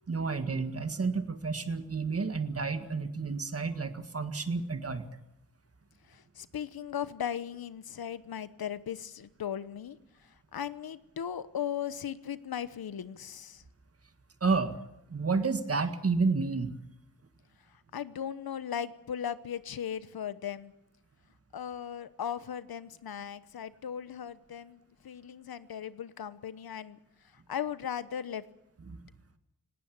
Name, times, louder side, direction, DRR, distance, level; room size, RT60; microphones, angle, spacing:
voice 1, 0.1-5.0 14.4-14.8 15.1-16.7, right 4 dB, 40° right, 9 dB, 1.8 m, -30 dB
voice 2, 6.1-10.0 10.5-13.6 17.9-20.7 21.5-27.0 27.5-28.4, left 9 dB, 75° left, 15 dB, 1.1 m, -37 dB
18.5 x 18.0 x 8.7 m, 0.83 s
wide cardioid pair, 105°, 37 cm